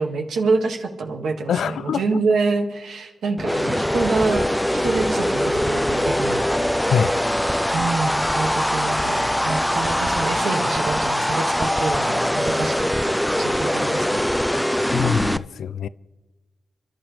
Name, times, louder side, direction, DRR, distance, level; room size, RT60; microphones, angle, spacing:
voice 1, 0.0-6.4 7.7-12.9 13.4-14.3, right 4 dB, 80° right, 1.8 m, -26 dB
voice 2, 1.5-2.2 6.9-7.1 14.9-15.9, left 8 dB, 80° left, 0.3 m, -24 dB
sound 1, 3.4-15.4, equal, 5° left, 0.6 m, -22 dB
sound 2, 4.1-10.4, equal, 40° left, 1.2 m, -42 dB
27.5 x 12.0 x 3.3 m
supercardioid pair, 40°, 0 cm